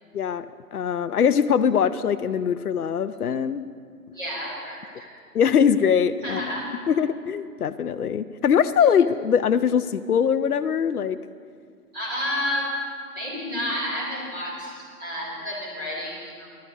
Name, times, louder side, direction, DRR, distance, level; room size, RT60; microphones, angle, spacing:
voice 1, 0.1-0.5 0.7-3.7 5.3-6.5 6.9-11.2, left 7 dB, 65° left, 10 dB, 0.6 m, -22 dB
voice 2, 4.1-5.1 6.2-6.7 11.9-12.7 13.2-16.5, left 1 dB, 15° right, -6 dB, 2.1 m, -30 dB
11.5 x 11.5 x 8.2 m, 2.2 s
figure-of-eight pair, 165°, 47 cm